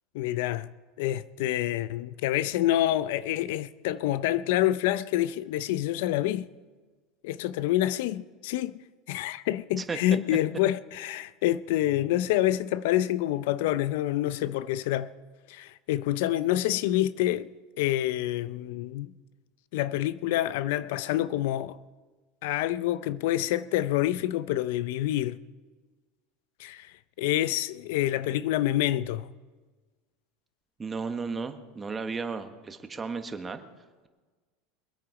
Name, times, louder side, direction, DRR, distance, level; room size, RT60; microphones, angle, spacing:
voice 1, 0.1-0.7 1.0-6.5 7.2-8.7 9.1-15.1 15.5-17.5 17.8-19.1 19.7-21.8 22.4-25.4 26.6-29.3, left 13 dB, 75° left, 0.5 m, -27 dB
voice 2, 30.8-33.6, right 4 dB, 20° right, 1.3 m, -34 dB
23.5 x 8.7 x 4.9 m
supercardioid pair, 130°, 0 cm